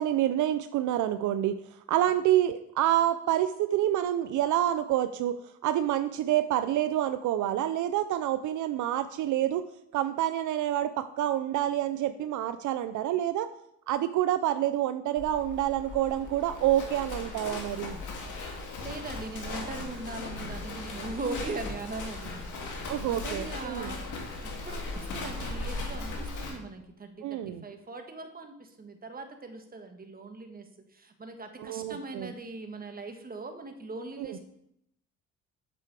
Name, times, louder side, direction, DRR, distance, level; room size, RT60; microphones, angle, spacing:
voice 1, 0.0-1.6 1.9-5.4 5.6-9.7 9.9-13.5 13.9-18.0 22.9-23.9 27.2-27.6 31.6-32.3 34.2-34.4, right 12 dB, 75° right, 11 dB, 0.5 m, -27 dB
Livestock farm animals working animals, 15.2-26.5, left 3 dB, 80° left, 2.3 m, -38 dB
voice 2, 18.8-34.4, right 3 dB, 30° right, 6 dB, 1.5 m, -40 dB
8.2 x 6.9 x 4.8 m, 0.75 s
cardioid pair, 90°, 30 cm